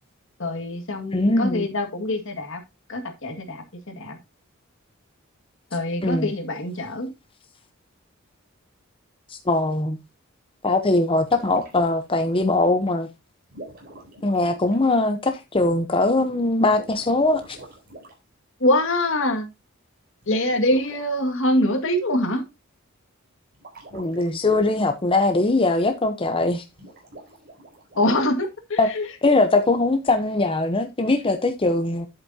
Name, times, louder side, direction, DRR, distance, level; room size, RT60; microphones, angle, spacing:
voice 1, 0.4-2.6 2.9-4.2 5.7-7.1 18.6-19.5 20.3-22.4 28.0-29.1, left 1 dB, 65° left, 2.1 m, -24 dB
voice 2, 1.1-1.6 6.0-6.3 9.3-10.0 10.6-13.1 14.2-17.6 23.9-26.6 28.8-28.9 29.2-32.1, left 2 dB, 25° left, 0.8 m, -21 dB
sound 1, 11.2-12.2 13.5-14.9 16.6-18.2 20.2-21.0 23.5-24.3 26.7-28.5, right 1 dB, 45° right, 4.3 m, -44 dB
10.5 x 8.3 x 2.8 m
head